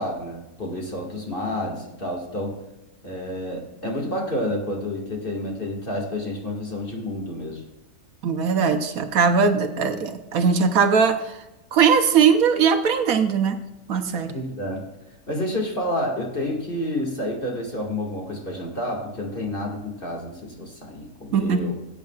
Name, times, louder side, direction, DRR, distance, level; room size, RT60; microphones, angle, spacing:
voice 1, 0.0-2.6 3.0-7.6 14.3-14.8 15.3-21.7, left 1 dB, 35° left, 0 dB, 2.1 m, -29 dB
voice 2, 8.2-11.4 11.7-13.6 13.9-14.4 21.3-21.7, right 6 dB, 70° right, 7 dB, 1.2 m, -20 dB
17.0 x 8.5 x 2.4 m, 1.0 s
omnidirectional pair, 1.6 m